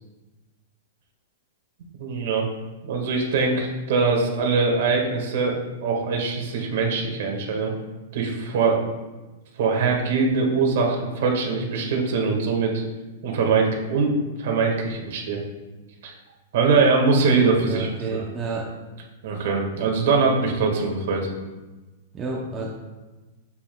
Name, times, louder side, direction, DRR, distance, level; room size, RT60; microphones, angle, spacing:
voice 1, 2.0-2.5 2.8-7.7 8.1-8.8 9.6-12.8 13.2-15.4 16.0-16.1 16.5-18.2 19.2-21.3, right 4 dB, 55° right, 0 dB, 1.7 m, -22 dB
voice 2, 17.6-18.7 22.1-22.7, right 3 dB, 15° right, -3 dB, 0.7 m, -30 dB
8.6 x 7.5 x 2.3 m, 1.2 s
supercardioid pair, 170°, 0 cm